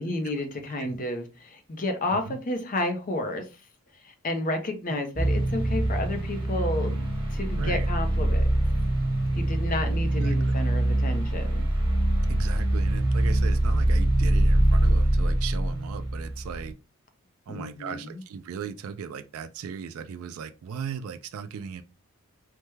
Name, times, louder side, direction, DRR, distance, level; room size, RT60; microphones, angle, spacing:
voice 1, 0.0-3.5 4.0-8.5 9.4-11.7 17.5-18.2, left 1 dB, 40° left, 0.6 m, -31 dB
sound 1, 5.1-16.7, right 1 dB, 25° right, 1.0 m, -24 dB
voice 2, 7.6-7.9 10.2-10.6 12.3-16.8 17.5-21.8, right 6 dB, 65° right, 0.3 m, -37 dB
3.3 x 2.1 x 3.1 m
head